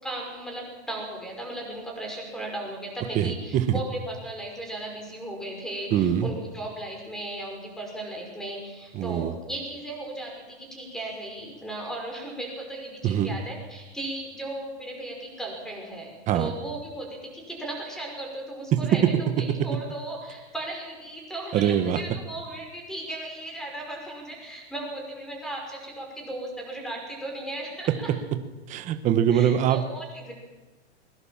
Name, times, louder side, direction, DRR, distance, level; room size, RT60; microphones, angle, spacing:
voice 1, 0.0-28.1 29.3-30.3, right 1 dB, ahead, 1 dB, 5.6 m, -36 dB
voice 2, 3.1-3.8 5.9-6.3 8.9-9.4 13.0-13.4 16.3-16.5 21.5-22.0 28.7-29.8, right 10 dB, 20° right, 9 dB, 1.3 m, -23 dB
22.0 x 21.5 x 7.3 m, 1.2 s
supercardioid pair, 160°, 34 cm